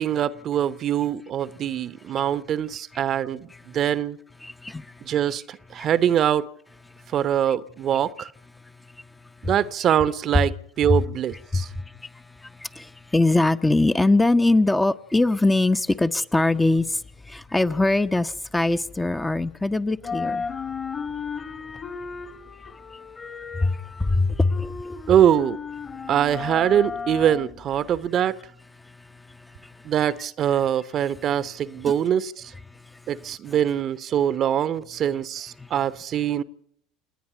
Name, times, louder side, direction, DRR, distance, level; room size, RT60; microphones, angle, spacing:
voice 1, 0.0-4.2 5.0-6.5 7.1-8.3 9.4-11.7 25.1-25.6 26.1-28.4 29.8-32.5 33.1-36.4, right 10 dB, 45° right, 0.9 m, -23 dB
voice 2, 4.4-5.1 5.8-5.9 6.9-7.2 7.5-7.6 8.6-9.5 10.9-11.0 11.5-20.5 23.6-25.0 28.8-29.9 31.8-31.9 32.7-33.6 35.6-35.7, left 2 dB, 10° left, 0.8 m, -24 dB
sound 1, 16.8-19.6 19.9-28.1, left 5 dB, 30° left, 1.7 m, -35 dB
28.5 x 9.6 x 9.4 m
figure-of-eight pair, 70°, 0 cm